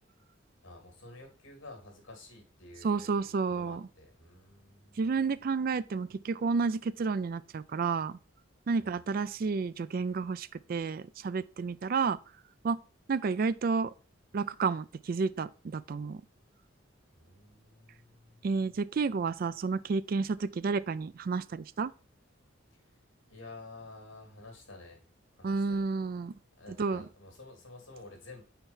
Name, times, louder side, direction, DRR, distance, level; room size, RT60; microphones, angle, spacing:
voice 1, 0.6-5.1 8.8-9.0 17.1-18.5 22.7-23.0 23.3-25.0 25.4-25.8 26.6-28.4, left 2 dB, 80° left, 2.9 m, -51 dB
voice 2, 2.8-3.8 5.0-8.2 8.7-12.2 12.6-12.8 13.1-13.9 14.3-16.2 18.4-21.9 25.4-26.4 26.8-27.0, right 4 dB, 45° right, 0.3 m, -31 dB
5.7 x 4.5 x 5.4 m
head